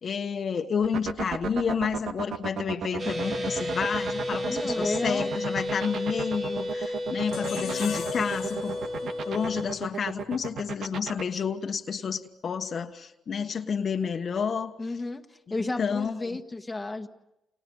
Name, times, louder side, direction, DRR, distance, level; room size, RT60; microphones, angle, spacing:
voice 1, 0.0-8.8 9.0-14.7 15.8-16.4, left 6 dB, 50° left, 5 dB, 1.4 m, -30 dB
sound 1, 0.8-11.2, right 7 dB, 65° right, 1.6 m, -33 dB
sound 2, 3.0-9.7, left 1 dB, 45° right, 5.0 m, -32 dB
voice 2, 4.5-5.3 14.8-15.2 15.5-17.1, left 2 dB, 15° left, 4 dB, 1.7 m, -32 dB
sound 3, 7.3-10.5, left 8 dB, 70° left, 1.6 m, -39 dB
30.0 x 28.5 x 5.6 m, 0.89 s
cardioid pair, 90°, 0 cm